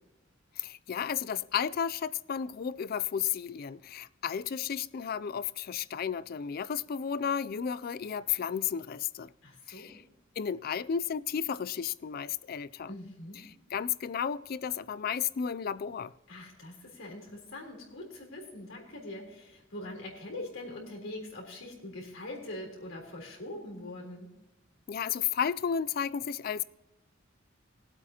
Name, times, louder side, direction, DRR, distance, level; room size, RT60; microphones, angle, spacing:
voice 1, 0.6-9.3 9.7-10.0 10.4-12.9 13.7-16.1 24.9-26.6, left 8 dB, 50° left, 0.4 m, -33 dB
voice 2, 9.4-10.0 12.9-13.4 16.3-24.3, left 1 dB, 90° left, 3.8 m, -43 dB
21.0 x 8.3 x 2.9 m
head